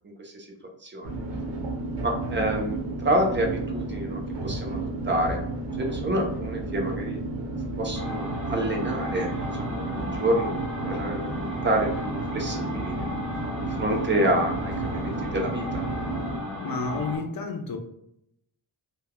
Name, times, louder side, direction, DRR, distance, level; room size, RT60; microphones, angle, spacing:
voice 1, 0.8-1.2 2.0-5.4 5.8-7.2 7.8-10.6 10.8-13.0 13.6-15.8, right 1 dB, 25° right, 2 dB, 0.8 m, -28 dB
sound 1, 1.0-16.4, right 2 dB, 70° right, 1.0 m, -32 dB
sound 2, 7.9-17.2, left 1 dB, ahead, 1.4 m, -35 dB
voice 2, 16.6-17.8, left 3 dB, 50° left, 4 dB, 0.7 m, -31 dB
3.2 x 2.3 x 2.3 m, 0.77 s
cardioid pair, 75°, 45 cm